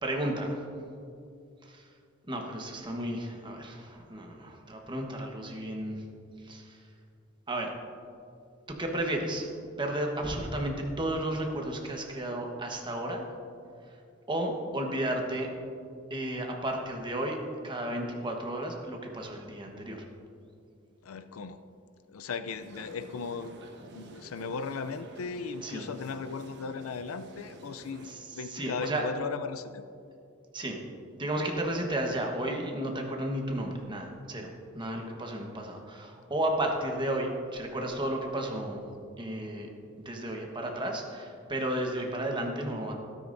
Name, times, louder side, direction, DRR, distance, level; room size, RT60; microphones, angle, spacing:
voice 1, 0.0-0.6 1.6-1.8 2.3-6.0 6.4-6.8 7.5-7.7 8.7-9.5 9.8-13.2 14.3-15.5 16.1-17.4 17.6-20.0 25.6-25.8 28.0-29.1 30.5-30.8 31.2-34.5 34.7-38.8 39.2-39.7 40.0-42.9, right 1 dB, 25° right, 1 dB, 1.2 m, -33 dB
voice 2, 21.0-21.6 22.1-23.5 23.9-29.8, left 5 dB, 75° left, 11 dB, 0.5 m, -37 dB
sound 1, 22.4-28.1, right 1 dB, 55° right, 1.1 m, -50 dB
13.0 x 13.0 x 2.6 m, 2.5 s
head